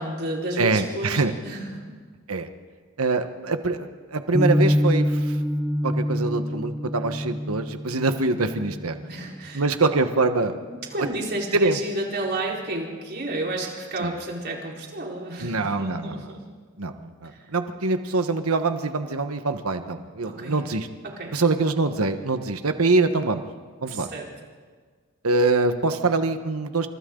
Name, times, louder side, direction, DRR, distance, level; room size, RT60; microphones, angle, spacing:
voice 1, 0.0-1.9 9.1-9.6 10.9-16.4 20.4-20.6 21.0-21.4 23.8-24.3, right 1 dB, 50° right, -2 dB, 4.6 m, -31 dB
voice 2, 0.6-1.3 2.3-2.5 3.0-5.4 5.8-8.9 9.5-10.6 11.5-11.8 14.0-14.1 15.4-16.2 16.8-20.9 21.3-23.4 23.8-24.1 25.2-26.9, right 3 dB, 80° right, 8 dB, 1.3 m, -24 dB
sound 1, 4.3-10.4, equal, ahead, 1.0 m, -26 dB
29.0 x 27.0 x 3.9 m, 1.5 s
head